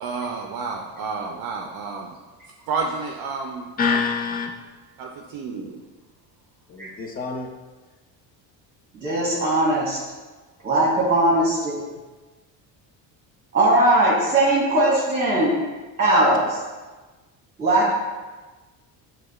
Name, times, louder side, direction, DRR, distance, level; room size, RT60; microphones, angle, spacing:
voice 1, 0.0-2.1 2.7-4.0 5.0-5.8, right 4 dB, 50° right, 1 dB, 0.4 m, -30 dB
voice 2, 3.8-4.5 6.7-7.5, left 5 dB, 20° left, 3 dB, 0.3 m, -25 dB
voice 3, 9.0-10.0 10.6-11.7 13.5-15.5 16.0-16.6 17.6-17.9, right 1 dB, 15° right, -6 dB, 1.0 m, -19 dB
6.1 x 2.2 x 2.2 m, 1.3 s
supercardioid pair, 90°, 49 cm